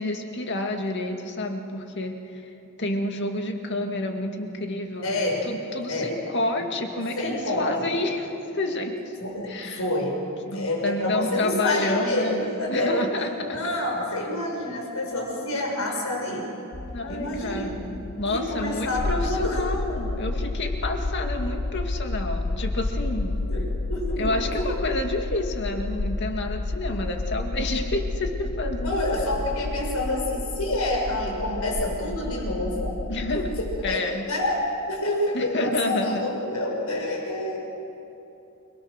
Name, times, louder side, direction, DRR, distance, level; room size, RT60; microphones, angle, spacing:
voice 1, 0.0-2.5 2.8-8.9 9.5-9.8 10.5-12.4 12.7-13.6 16.9-23.4 24.2-28.9 33.1-33.5 33.8-34.3 35.3-36.2, left 2 dB, 55° left, 4 dB, 2.2 m, -29 dB
voice 2, 5.0-5.5 5.9-6.1 7.2-7.9 9.2-10.2 10.5-13.0 13.4-16.5 17.1-17.8 18.3-19.6 19.9-20.2 23.3-24.8 28.8-32.9 33.6-37.6, left 1 dB, 85° left, -1 dB, 6.2 m, -28 dB
sound 1, 16.7-34.0, left 2 dB, 35° left, 0.6 m, -31 dB
29.0 x 22.5 x 6.6 m, 2.9 s
head